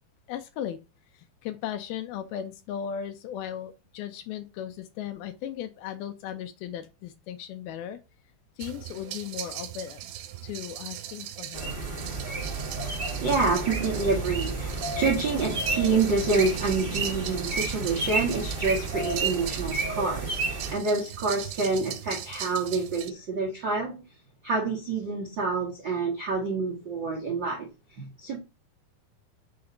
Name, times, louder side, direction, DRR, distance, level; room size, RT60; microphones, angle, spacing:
voice 1, 0.3-0.8 1.1-8.0 8.6-10.0 10.4-11.7, left 9 dB, 80° left, 2.4 m, -36 dB
sound 1, 8.6-23.1, right 12 dB, 80° right, 2.6 m, -39 dB
sound 2, 11.5-20.7, right 3 dB, 40° right, 0.7 m, -31 dB
voice 2, 13.2-24.0 24.4-27.7 28.0-28.4, right 3 dB, 55° right, 1.2 m, -27 dB
6.4 x 4.0 x 5.9 m
omnidirectional pair, 4.7 m